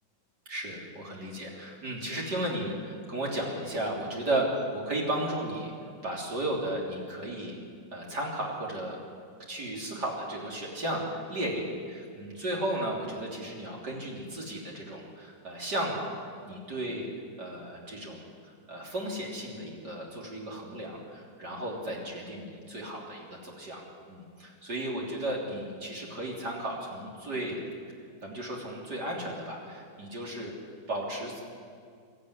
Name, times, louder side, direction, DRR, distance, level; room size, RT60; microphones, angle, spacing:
voice 1, 0.5-5.7 6.0-7.6 7.9-9.0 9.5-16.2 16.5-17.1 17.4-18.2 18.7-23.8 24.1-27.6 28.2-30.5 30.9-31.4, right 1 dB, 65° right, -3 dB, 3.9 m, -34 dB
24.0 x 14.0 x 9.8 m, 2.3 s
omnidirectional pair, 1.9 m